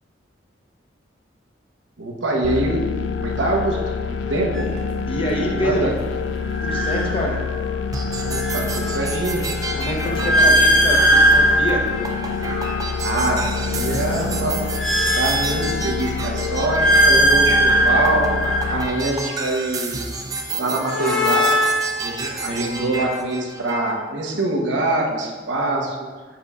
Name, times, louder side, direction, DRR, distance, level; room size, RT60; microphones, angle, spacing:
voice 1, 2.0-2.8 3.2-3.8 4.1-4.7 5.5-5.9 8.2-9.5 10.4-10.6 13.0-14.5 14.9-18.3 18.7-20.0 20.6-21.6 22.0-26.1, right 2 dB, 90° right, 0 dB, 0.9 m, -24 dB
sound 1, 2.4-18.9, left 5 dB, 80° left, 0.3 m, -27 dB
sound 2, 4.5-4.8 6.5-7.7 8.1-12.9 13.4-16.1 16.5-19.5 20.5-22.8, right 1 dB, 5° left, 1.0 m, -20 dB
voice 2, 5.1-5.9 6.6-7.4 9.8-11.8, equal, 30° left, 0 dB, 0.8 m, -26 dB
sound 3, 7.9-23.9, right 2 dB, 20° right, 0.5 m, -31 dB
7.3 x 5.4 x 2.4 m, 1.4 s
head